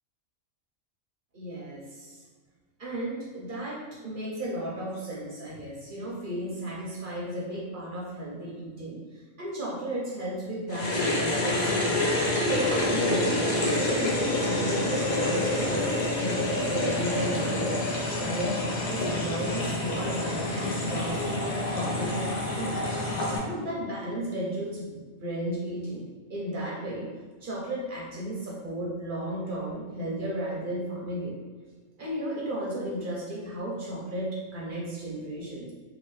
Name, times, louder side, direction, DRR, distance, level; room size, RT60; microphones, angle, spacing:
voice 1, 1.3-2.2 2.8-11.9 12.4-17.8 18.2-22.9 23.4-26.0 26.3-27.1 27.4-31.3 32.0-35.7, right 1 dB, 55° right, -5 dB, 0.6 m, -34 dB
sound 1, 10.7-23.4, left 1 dB, 65° left, 0.4 m, -28 dB
2.8 x 2.3 x 3.1 m, 1.4 s
omnidirectional pair, 1.4 m